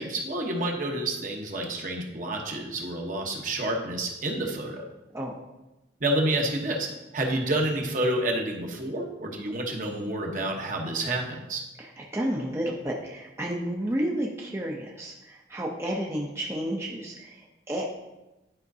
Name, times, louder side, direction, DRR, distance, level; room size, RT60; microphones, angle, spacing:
voice 1, 0.0-4.8 6.0-11.6, right 1 dB, 50° right, 1 dB, 1.0 m, -29 dB
voice 2, 11.8-17.9, right 1 dB, 15° right, -2 dB, 0.6 m, -31 dB
11.0 x 5.1 x 2.7 m, 1.0 s
head